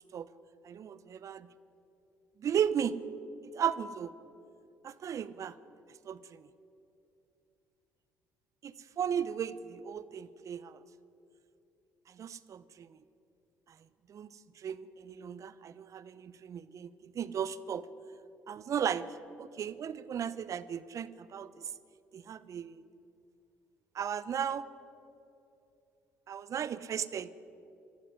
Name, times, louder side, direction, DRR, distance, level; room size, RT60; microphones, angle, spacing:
voice 1, 0.6-1.5 2.4-2.9 3.5-4.1 4.8-5.5 6.0-6.4 8.6-10.8 12.1-12.9 14.1-14.3 14.6-17.9 18.5-19.1 19.4-21.7 22.1-22.7 23.9-24.7 26.3-27.3, right 8 dB, 50° right, 16 dB, 0.9 m, -35 dB
23.0 x 13.0 x 9.5 m, 2.7 s
hypercardioid pair, 55°, 7 cm